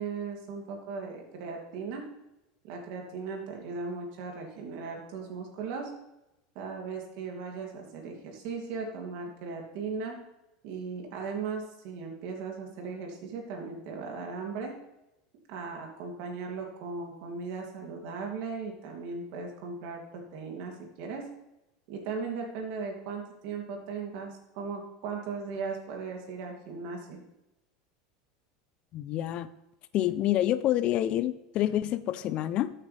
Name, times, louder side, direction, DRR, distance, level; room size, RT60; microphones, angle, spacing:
voice 1, 0.0-2.1 2.6-5.9 6.5-10.2 10.6-14.8 15.5-21.3 21.9-27.2, right 5 dB, 60° right, 1 dB, 2.8 m, -37 dB
voice 2, 28.9-29.5 29.9-32.7, left 12 dB, 45° left, 15 dB, 0.6 m, -27 dB
12.5 x 8.7 x 3.5 m, 0.94 s
supercardioid pair, 135°, 3 cm